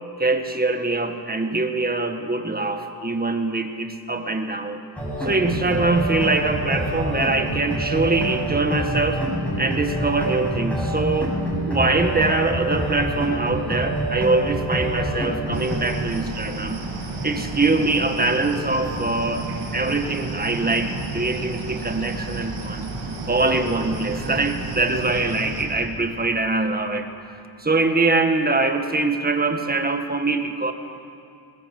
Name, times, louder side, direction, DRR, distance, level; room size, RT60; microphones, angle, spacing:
voice 1, 0.2-4.8 5.2-9.2 9.6-16.8 17.2-19.5 19.7-22.9 23.3-30.7, right 3 dB, 20° right, 6 dB, 1.8 m, -23 dB
sound 1, 5.0-15.8, right 1 dB, 5° left, 6.8 m, -26 dB
sound 2, 15.5-25.6, right 3 dB, 70° right, 6.7 m, -31 dB
22.5 x 20.0 x 7.8 m, 2.6 s
cardioid pair, 110°, 45 cm